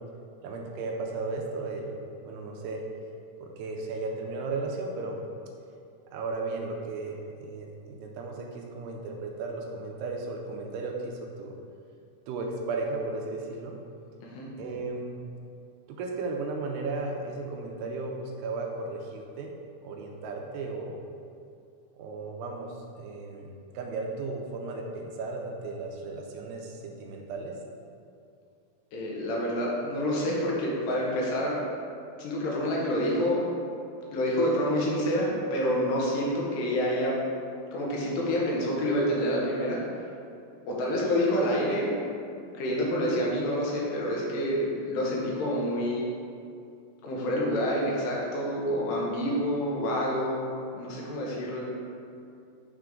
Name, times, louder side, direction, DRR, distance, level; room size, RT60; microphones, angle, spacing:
voice 1, 0.4-2.8 3.4-5.2 6.1-11.6 12.3-13.8 14.6-15.2 16.0-19.5 19.8-21.0 22.0-27.6, right 3 dB, 85° right, 1 dB, 2.6 m, -35 dB
voice 2, 28.9-31.7 32.2-33.5 34.1-37.2 37.7-39.9 40.6-42.0 42.5-46.1 47.0-50.5 50.7-51.7, equal, 80° left, -4 dB, 3.1 m, -28 dB
9.0 x 3.4 x 3.7 m, 2.5 s
omnidirectional pair, 4.8 m